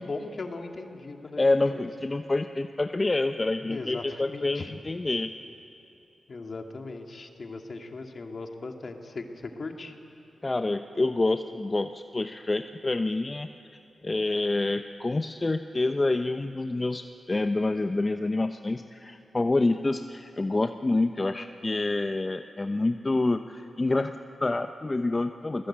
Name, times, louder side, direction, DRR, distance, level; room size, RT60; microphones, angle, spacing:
voice 1, 0.0-1.8 3.6-4.7 6.3-10.0, left 3 dB, 55° left, 3 dB, 2.5 m, -38 dB
voice 2, 1.4-5.3 10.4-13.5 14.0-25.7, left 2 dB, 35° left, 8 dB, 0.9 m, -27 dB
29.0 x 19.5 x 8.8 m, 2.9 s
supercardioid pair, 40°, 0 cm